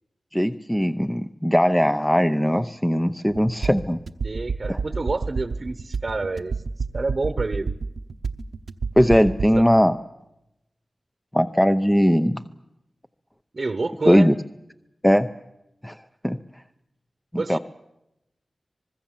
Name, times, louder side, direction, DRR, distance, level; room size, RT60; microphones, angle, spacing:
voice 1, 0.3-4.0 4.7-4.8 9.0-10.0 11.3-12.4 14.1-14.3 15.0-15.3 15.8-16.0 16.2-16.4 17.5-17.6, equal, 10° left, 8 dB, 0.8 m, -19 dB
sound 1, 3.3-9.6, right 4 dB, 80° right, 1.0 m, -29 dB
voice 2, 4.2-6.5 6.9-7.7 13.5-14.3 17.4-17.6, right 3 dB, 55° right, 11 dB, 1.0 m, -28 dB
25.0 x 20.5 x 7.4 m, 0.89 s
cardioid pair, 55°, 0 cm